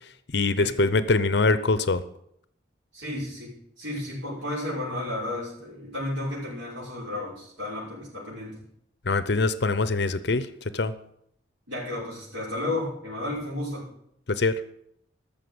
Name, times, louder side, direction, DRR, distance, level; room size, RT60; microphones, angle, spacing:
voice 1, 0.3-2.0 9.1-10.5 10.7-10.9 14.3-14.6, left 3 dB, 60° left, 14 dB, 0.7 m, -23 dB
voice 2, 2.9-8.6 11.7-13.8, left 1 dB, 90° right, -6 dB, 5.9 m, -33 dB
13.0 x 6.9 x 7.8 m, 0.73 s
head